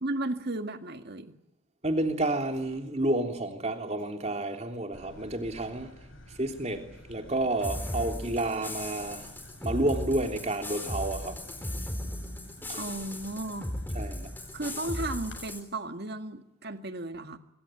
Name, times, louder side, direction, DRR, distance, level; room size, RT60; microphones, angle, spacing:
voice 1, 0.0-1.3 12.7-13.7 14.5-17.4, right 2 dB, 50° right, 2.0 m, -34 dB
voice 2, 1.8-5.9 6.4-9.3 9.6-11.4 12.7-12.8 13.9-14.3, right 1 dB, 30° right, 3.3 m, -30 dB
sound 1, 4.9-15.4, left 1 dB, 60° left, 6.8 m, -51 dB
sound 2, 7.6-15.6, left 1 dB, 10° left, 4.1 m, -37 dB
25.5 x 23.5 x 9.9 m
head